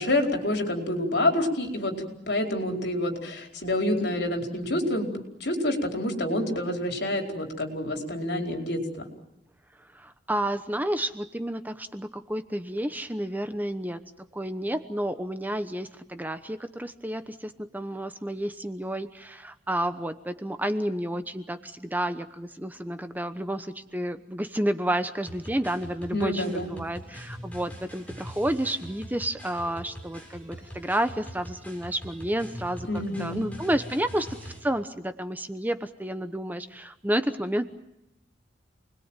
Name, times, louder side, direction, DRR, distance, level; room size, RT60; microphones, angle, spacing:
voice 1, 0.0-5.1 5.4-8.8 26.1-26.7 32.9-33.4, left 1 dB, 65° left, 2 dB, 4.7 m, -27 dB
voice 2, 9.9-14.0 14.3-37.6, right 1 dB, 10° right, 9 dB, 1.0 m, -30 dB
sound 1, 25.2-34.6, equal, 10° left, 7.3 m, -43 dB
29.0 x 21.0 x 9.1 m, 0.87 s
head